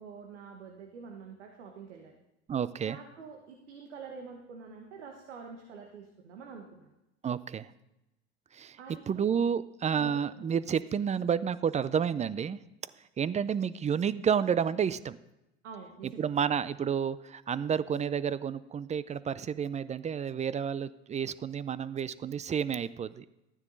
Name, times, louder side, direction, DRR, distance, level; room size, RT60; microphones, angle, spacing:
voice 1, 0.0-2.2 2.8-6.9 8.8-9.4 10.0-10.4 15.6-16.3, right 5 dB, 85° right, 3 dB, 1.2 m, -47 dB
voice 2, 2.5-3.0 7.2-7.7 8.5-8.8 9.1-12.6 13.2-15.2 16.0-23.3, right 7 dB, 20° right, 17 dB, 0.4 m, -30 dB
12.5 x 9.7 x 3.9 m, 0.94 s
hypercardioid pair, 75°, 34 cm